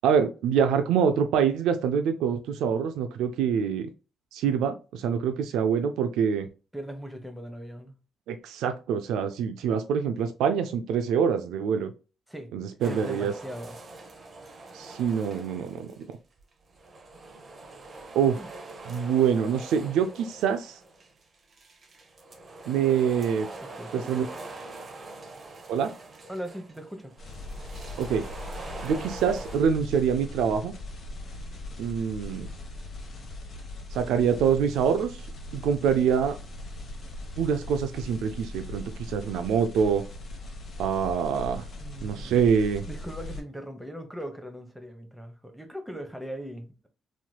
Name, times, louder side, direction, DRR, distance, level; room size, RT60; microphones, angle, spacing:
voice 1, 0.0-3.9 4.3-6.5 8.3-11.9 12.5-13.3 14.7-15.9 18.1-18.4 18.9-20.8 22.7-23.5 23.9-24.3 25.7-25.9 28.0-28.2 28.8-30.7 31.8-32.5 33.9-35.2 35.5-36.4 37.4-40.0 40.8-41.6 42.0-42.8, right 7 dB, 85° right, 0.3 m, -25 dB
voice 2, 6.7-8.0 12.3-12.5 12.8-13.8 18.4-18.5 23.6-24.1 26.3-27.1 41.8-42.4 42.9-46.9, equal, 5° right, 0.8 m, -39 dB
sound 1, 12.8-16.1 16.4-29.6, right 2 dB, 40° right, 0.7 m, -44 dB
sound 2, 27.2-43.4, left 1 dB, 50° left, 1.1 m, -40 dB
3.1 x 2.9 x 2.2 m
cardioid pair, 90°, 0 cm